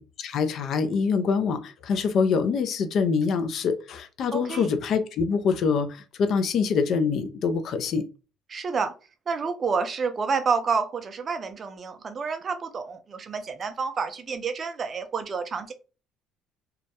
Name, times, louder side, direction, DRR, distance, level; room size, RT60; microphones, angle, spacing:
voice 1, 0.0-8.0, left 5 dB, 50° left, 0.3 m, -25 dB
voice 2, 4.3-4.7 8.5-8.9 9.3-15.7, right 5 dB, 30° right, 0.4 m, -29 dB
2.2 x 2.0 x 2.7 m
cardioid pair, 135°, 0 cm